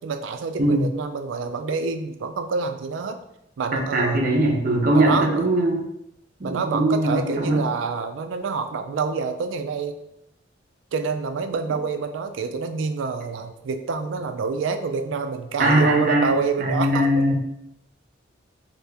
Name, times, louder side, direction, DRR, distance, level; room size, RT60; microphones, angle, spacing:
voice 1, 0.0-3.2 3.6-4.2 4.9-5.6 6.4-10.0 10.9-17.3, right 5 dB, 85° right, 7 dB, 0.4 m, -27 dB
voice 2, 3.7-5.8 6.4-7.7 15.6-16.3 16.6-17.3, right 1 dB, 50° right, 0 dB, 0.7 m, -20 dB
2.8 x 2.8 x 3.4 m, 0.81 s
head